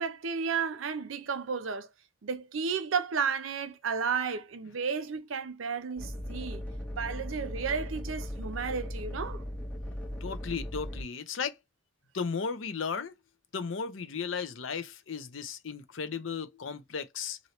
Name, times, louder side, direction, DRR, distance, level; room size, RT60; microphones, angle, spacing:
voice 1, 0.0-1.9 2.2-6.6 7.0-9.4, right 6 dB, 80° right, 0.6 m, -33 dB
sound 1, 6.0-11.0, equal, 10° left, 0.9 m, -38 dB
voice 2, 10.2-11.6 12.1-13.1 13.5-17.4, left 5 dB, 70° left, 0.6 m, -35 dB
2.9 x 2.7 x 2.9 m
head